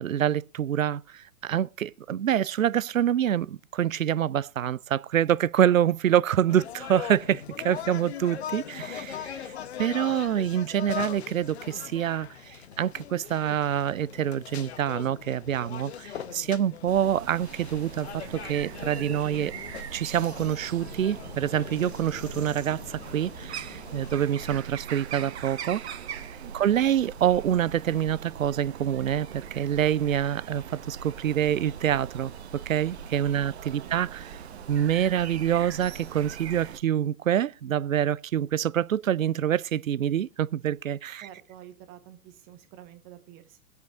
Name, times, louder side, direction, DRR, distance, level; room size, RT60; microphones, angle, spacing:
voice 1, 0.0-9.5 9.8-19.5 19.9-25.8 26.5-32.3 32.7-34.3 34.7-41.3, right 10 dB, 60° right, 0.5 m, -26 dB
sound 1, 6.5-24.6, left 8 dB, 45° left, 0.9 m, -40 dB
sound 2, 16.9-36.8, right 8 dB, 45° right, 0.9 m, -41 dB
voice 2, 26.4-26.7 33.3-34.1 34.5-34.9 41.2-43.6, right 11 dB, 20° right, 1.0 m, -50 dB
23.5 x 8.2 x 2.4 m
figure-of-eight pair, 120°, 47 cm